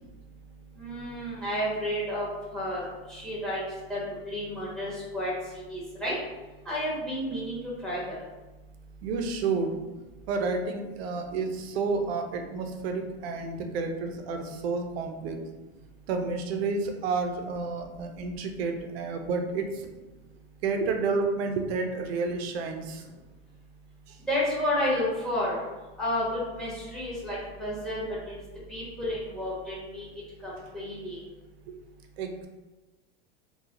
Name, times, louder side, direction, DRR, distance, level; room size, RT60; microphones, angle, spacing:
voice 1, 0.8-2.3 2.5-2.8 3.1-3.6 3.9-4.0 4.3-6.1 6.6-8.1 24.3-25.6 26.0-28.3 28.7-30.1 30.4-31.2, left 1 dB, ahead, -7 dB, 1.4 m, -31 dB
voice 2, 9.0-9.7 10.3-15.4 16.1-19.9 20.6-23.1 24.1-24.2 31.7-31.8 32.2-32.5, right 4 dB, 75° right, 4 dB, 0.6 m, -30 dB
3.8 x 2.4 x 2.9 m, 1.2 s
supercardioid pair, 130°, 31 cm